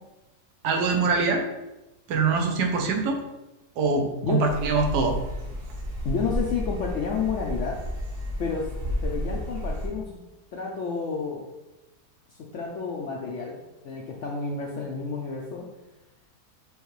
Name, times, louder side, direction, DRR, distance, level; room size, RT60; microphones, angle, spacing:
voice 1, 0.6-1.4 2.1-3.2 3.8-5.2, right 4 dB, 80° right, 2 dB, 1.3 m, -23 dB
Park Rome, 4.4-9.9, equal, 45° right, 0.8 m, -32 dB
voice 2, 6.0-7.8 8.4-10.2 10.5-11.5 12.3-15.7, left 5 dB, 70° left, -1 dB, 0.7 m, -30 dB
5.4 x 3.1 x 3.1 m, 1.0 s
omnidirectional pair, 1.8 m